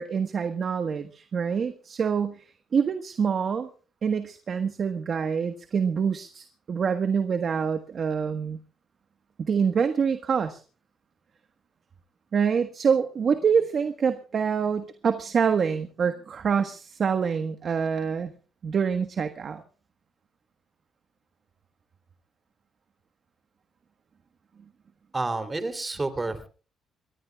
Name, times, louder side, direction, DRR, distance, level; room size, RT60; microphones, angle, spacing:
voice 1, 0.0-2.4 2.7-3.7 4.0-8.6 9.4-10.6 12.3-18.3 18.6-19.6, right 6 dB, 50° right, 8 dB, 1.4 m, -26 dB
voice 2, 25.1-26.5, right 2 dB, 20° right, 8 dB, 3.1 m, -29 dB
24.0 x 20.0 x 2.4 m, 0.37 s
cardioid pair, 90°, 0 cm